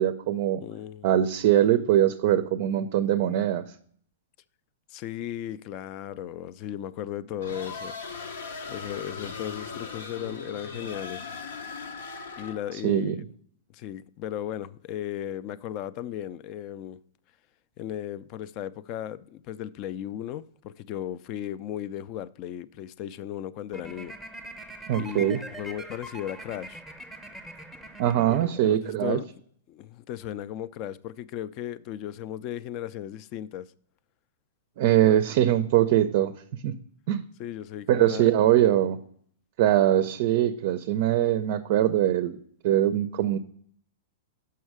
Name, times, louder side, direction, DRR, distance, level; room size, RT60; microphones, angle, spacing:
voice 1, 0.0-0.6 1.0-3.7 12.8-13.2 24.9-25.4 28.0-29.2 34.8-36.3 36.6-36.8 37.1-37.2 37.9-39.0 39.6-42.4 42.6-43.4, right 12 dB, 55° right, 0.4 m, -22 dB
voice 2, 0.6-1.1 4.9-8.0 8.7-11.3 12.4-13.1 13.7-17.0 17.8-24.2 24.9-26.8 28.3-29.3 29.7-33.7 37.4-38.3, left 11 dB, 40° left, 0.3 m, -36 dB
sound 1, 7.4-12.8, left 4 dB, 85° left, 0.8 m, -38 dB
sound 2, 23.7-28.9, right 1 dB, ahead, 0.7 m, -43 dB
6.3 x 5.6 x 4.7 m
hypercardioid pair, 145°, 0 cm